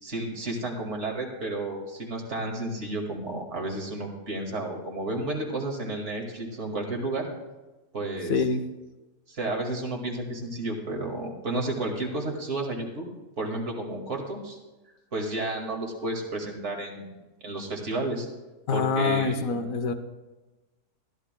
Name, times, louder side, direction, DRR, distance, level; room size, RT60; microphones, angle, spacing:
voice 1, 0.0-7.3 7.9-8.3 9.3-13.1 13.4-14.6 15.1-17.1 17.4-18.3 18.7-19.6, right 2 dB, 45° right, 1 dB, 2.3 m, -32 dB
voice 2, 8.3-8.6 18.7-19.9, left 5 dB, 60° left, 8 dB, 1.2 m, -25 dB
21.5 x 14.0 x 2.2 m, 1.1 s
omnidirectional pair, 1.8 m